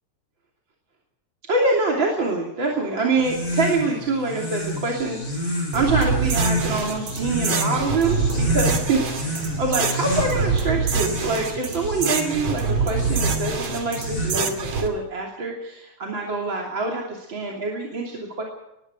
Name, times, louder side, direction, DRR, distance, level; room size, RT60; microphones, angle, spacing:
voice 1, 1.5-18.4, right 3 dB, 40° right, -1 dB, 3.6 m, -25 dB
sound 1, 3.1-14.7, left 1 dB, 30° left, 6.5 m, -30 dB
sound 2, 5.7-14.9, right 5 dB, 65° right, 3.7 m, -25 dB
24.5 x 21.5 x 4.9 m, 0.91 s
omnidirectional pair, 3.4 m